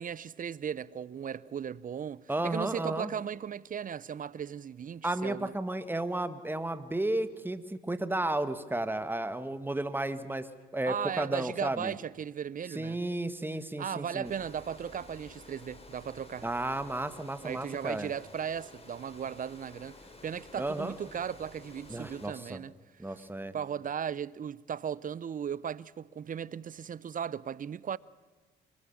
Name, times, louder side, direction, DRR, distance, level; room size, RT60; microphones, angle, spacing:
voice 1, 0.0-5.5 10.9-13.0 13.8-16.5 17.4-20.0 20.2-22.7 23.0-23.3 23.5-28.0, right 8 dB, 40° right, 0.7 m, -37 dB
voice 2, 2.3-3.1 5.0-10.5 10.7-11.9 12.7-14.3 16.4-18.1 20.6-20.9 21.9-22.6 23.0-23.5, right 1 dB, 10° right, 1.6 m, -33 dB
Water, 14.2-22.3, left 2 dB, 30° left, 4.5 m, -52 dB
24.5 x 19.5 x 7.2 m
supercardioid pair, 65°, 21 cm